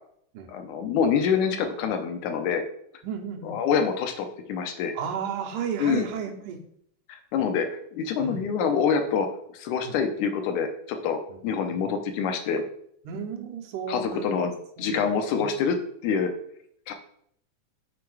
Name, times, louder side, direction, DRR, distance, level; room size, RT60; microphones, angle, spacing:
voice 1, 0.5-2.6 3.4-4.9 5.8-6.1 7.3-9.3 9.5-12.6 13.9-14.5 14.8-15.8 16.0-16.3 16.9-17.0, left 6 dB, 80° left, 6 dB, 2.1 m, -26 dB
voice 2, 3.0-3.6 5.0-6.6 8.2-8.4 9.8-10.0 13.1-14.5 14.8-15.1 15.4-15.5, right 7 dB, 85° right, 3 dB, 2.4 m, -33 dB
6.8 x 4.3 x 4.7 m, 0.68 s
omnidirectional pair, 3.5 m